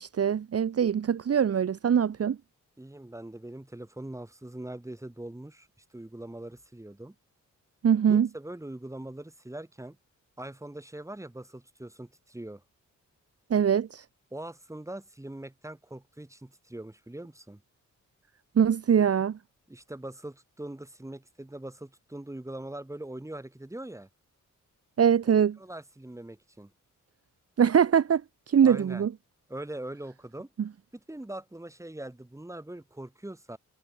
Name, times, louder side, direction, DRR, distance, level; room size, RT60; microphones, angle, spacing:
voice 1, 0.0-2.4 7.8-8.3 13.5-14.0 18.6-19.4 25.0-25.5 27.6-28.2 28.5-29.1, right 8 dB, 50° right, 1.2 m, -23 dB
voice 2, 2.8-7.2 8.1-10.0 10.4-12.6 14.3-17.6 19.7-24.1 25.6-26.7 28.6-29.0 29.5-30.5 30.9-33.6, right 1 dB, 10° right, 6.0 m, -42 dB
wide cardioid pair, 125°, 31 cm